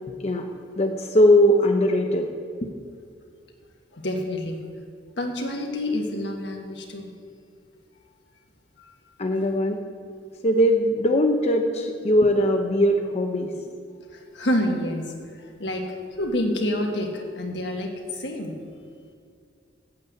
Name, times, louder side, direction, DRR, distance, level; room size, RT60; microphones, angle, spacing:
voice 1, 0.8-2.3 9.2-9.8 10.4-13.5, equal, 40° left, 3 dB, 0.7 m, -20 dB
voice 2, 3.9-4.6 5.2-7.1 14.3-15.1 15.6-18.5, left 1 dB, 70° left, 2 dB, 1.5 m, -27 dB
8.6 x 8.0 x 8.0 m, 2.3 s
head